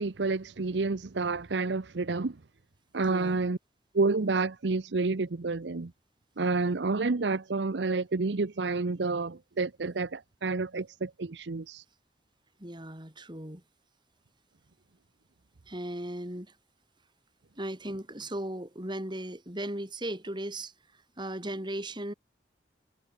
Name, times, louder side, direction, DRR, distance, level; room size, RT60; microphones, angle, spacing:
voice 1, 0.0-2.4 2.9-3.6 3.9-5.9 6.4-11.8, right 3 dB, 80° right, 0.8 m, -29 dB
voice 2, 3.1-3.4 12.6-13.6 15.7-16.5 17.6-20.7 21.2-22.1, right 1 dB, 25° right, 4.5 m, -37 dB
head